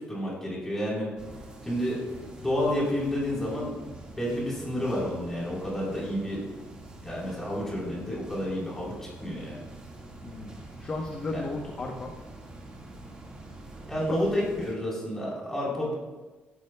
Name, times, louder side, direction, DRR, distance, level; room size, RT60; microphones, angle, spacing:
voice 1, 0.1-1.1 1.6-1.9 2.4-3.7 4.1-6.4 7.0-8.9 9.2-9.6 11.3-11.4 13.9-15.9, equal, 10° left, -5 dB, 4.1 m, -30 dB
sound 1, 1.2-14.7, right 1 dB, 25° right, 1.8 m, -45 dB
voice 2, 10.2-12.2 14.1-14.2, left 3 dB, 25° left, 1 dB, 1.0 m, -35 dB
17.5 x 11.0 x 2.3 m, 1.2 s
cardioid pair, 165°, 4 cm